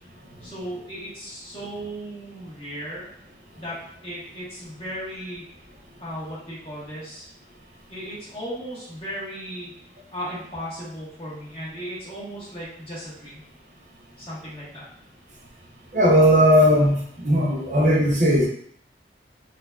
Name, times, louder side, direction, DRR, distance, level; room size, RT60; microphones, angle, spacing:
voice 1, 0.4-3.1 3.6-5.4 6.0-7.3 7.9-9.7 10.1-13.4 14.2-14.8, equal, 30° left, -8 dB, 1.4 m, -36 dB
voice 2, 15.9-18.5, equal, 45° right, -3 dB, 0.7 m, -17 dB
3.9 x 2.7 x 2.4 m, 0.65 s
head